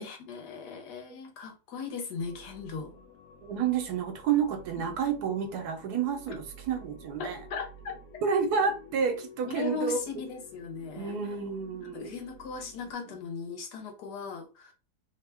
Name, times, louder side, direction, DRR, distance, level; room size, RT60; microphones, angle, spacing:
voice 1, 0.0-2.9 7.2-7.9 9.5-11.1 11.9-14.7, left 5 dB, 85° left, 1.4 m, -38 dB
sound 1, 2.2-12.9, left 2 dB, 65° left, 0.9 m, -51 dB
voice 2, 3.4-7.4 8.2-10.0 11.0-12.2, right 6 dB, 80° right, 1.2 m, -30 dB
3.2 x 2.2 x 3.4 m
omnidirectional pair, 1.7 m